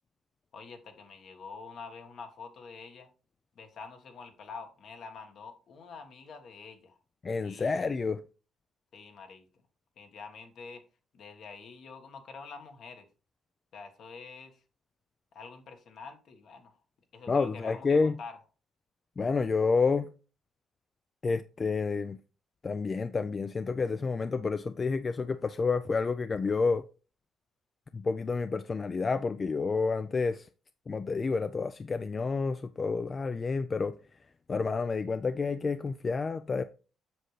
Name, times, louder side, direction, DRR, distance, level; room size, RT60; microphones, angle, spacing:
voice 1, 0.5-3.1 3.5-6.9 7.4-7.8 8.9-9.5 10.0-10.8 11.1-13.1 13.7-14.6 15.3-16.7 17.1-18.3, left 5 dB, 65° left, 1.5 m, -46 dB
voice 2, 7.2-8.2 17.3-18.2 19.2-20.1 21.2-22.2 22.6-26.8 27.9-30.5 30.9-34.0 34.5-36.6, left 4 dB, 35° left, 0.4 m, -29 dB
7.8 x 6.4 x 3.2 m
cardioid pair, 90°, 0 cm